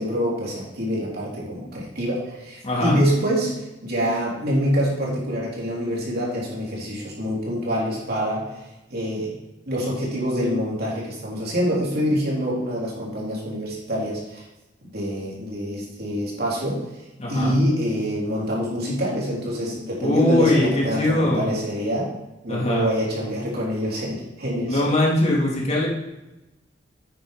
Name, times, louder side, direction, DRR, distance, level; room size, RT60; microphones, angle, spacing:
voice 1, 0.0-8.5 8.9-9.3 9.7-14.4 14.9-16.8 17.3-22.1 22.4-24.8, equal, 55° right, -4 dB, 3.4 m, -25 dB
voice 2, 2.6-3.0 17.2-17.5 20.0-21.5 22.5-22.9 24.7-25.9, left 1 dB, 35° left, -4 dB, 2.6 m, -21 dB
9.2 x 6.4 x 5.0 m, 1.0 s
head